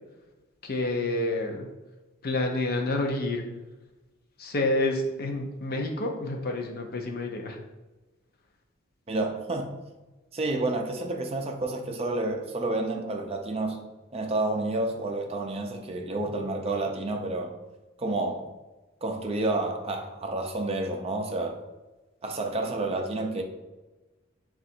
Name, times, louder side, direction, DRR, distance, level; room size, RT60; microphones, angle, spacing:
voice 1, 0.6-1.7 2.2-3.5 4.4-7.6, left 2 dB, 50° left, 0.6 m, -28 dB
voice 2, 9.1-9.7 10.3-13.9 14.1-17.5 18.0-18.5 19.0-21.6 22.2-23.4, right 2 dB, 30° right, 0.5 m, -30 dB
3.8 x 2.4 x 4.2 m
head